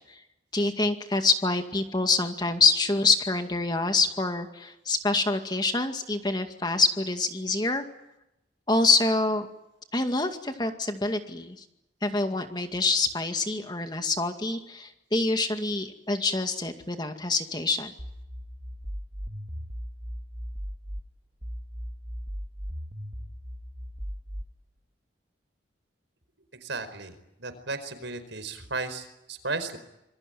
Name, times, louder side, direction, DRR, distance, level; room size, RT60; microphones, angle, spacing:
voice 1, 0.5-7.8 8.7-9.5 9.9-11.6 12.0-17.9, left 3 dB, 20° left, 6 dB, 2.2 m, -26 dB
sound 1, 18.0-21.0 21.4-24.4, equal, 30° right, 2.8 m, -37 dB
voice 2, 26.6-27.1 27.4-29.8, right 3 dB, 75° right, 11 dB, 4.8 m, -34 dB
27.0 x 22.5 x 9.3 m, 0.88 s
head